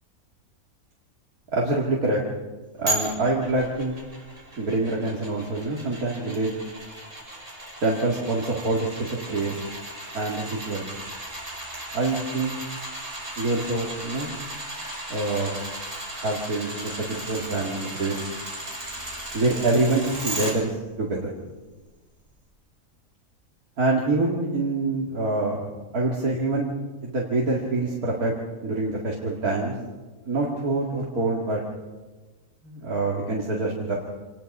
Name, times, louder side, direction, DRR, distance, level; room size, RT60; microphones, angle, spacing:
voice 1, 1.5-2.2 2.8-4.0 4.6-6.5 7.8-9.6 10.1-10.9 11.9-12.5 13.4-14.3 15.1-15.5 16.2-18.2 19.3-21.3 23.8-26.7 27.0-28.3 28.6-29.7 30.3-31.6 32.6-33.9, right 2 dB, 85° right, -2 dB, 2.8 m, -25 dB
sound 1, 2.9-20.5 21.0-21.1, right 1 dB, 55° right, 5.9 m, -36 dB
26.0 x 20.0 x 5.5 m, 1.3 s
omnidirectional pair, 1.5 m